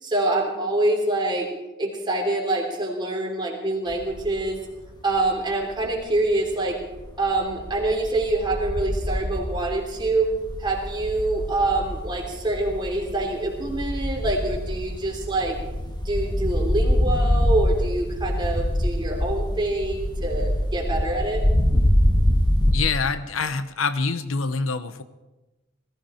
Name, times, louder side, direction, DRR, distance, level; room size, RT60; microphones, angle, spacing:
voice 1, 0.0-1.5 1.8-4.6 5.0-6.8 7.2-10.3 10.6-15.6 16.0-21.4, right 2 dB, 20° right, 0 dB, 3.1 m, -25 dB
sound 1, 3.9-4.5 4.9-6.3 6.7-22.7, equal, 20° left, 1.7 m, -25 dB
voice 2, 22.7-25.0, left 4 dB, 80° left, 12 dB, 0.8 m, -25 dB
19.5 x 15.0 x 4.4 m, 1.1 s
head